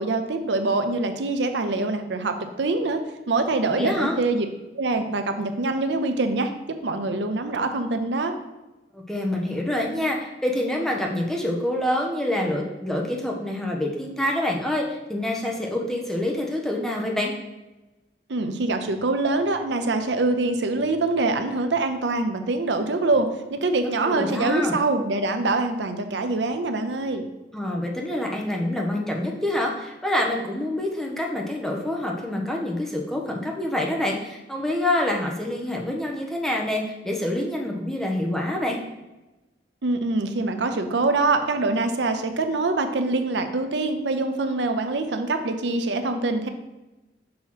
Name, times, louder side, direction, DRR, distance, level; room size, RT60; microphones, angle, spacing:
voice 1, 0.0-3.0 3.3-4.5 4.7-8.4 18.3-27.2 39.8-46.5, right 3 dB, 80° right, 7 dB, 0.6 m, -24 dB
voice 2, 3.8-4.1 8.9-17.3 24.0-24.7 27.5-38.8, left 1 dB, ahead, -1 dB, 0.8 m, -26 dB
6.3 x 3.0 x 5.6 m, 1.0 s
head